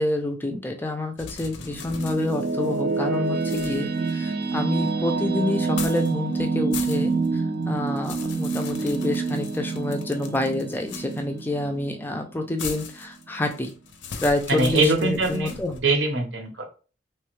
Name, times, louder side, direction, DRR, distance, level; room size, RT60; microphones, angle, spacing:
voice 1, 0.0-13.7 14.2-15.8, left 2 dB, 10° left, 4 dB, 0.3 m, -28 dB
sound 1, 1.2-3.0 3.4-4.9 5.6-6.1 6.5-7.3 7.6-11.4 12.6-15.8, left 6 dB, 85° left, 0.5 m, -39 dB
sound 2, 1.4-12.7, right 4 dB, 55° right, 0.5 m, -27 dB
voice 2, 14.5-16.6, right 2 dB, 80° right, 3 dB, 0.9 m, -23 dB
3.1 x 2.3 x 3.1 m, 0.35 s
head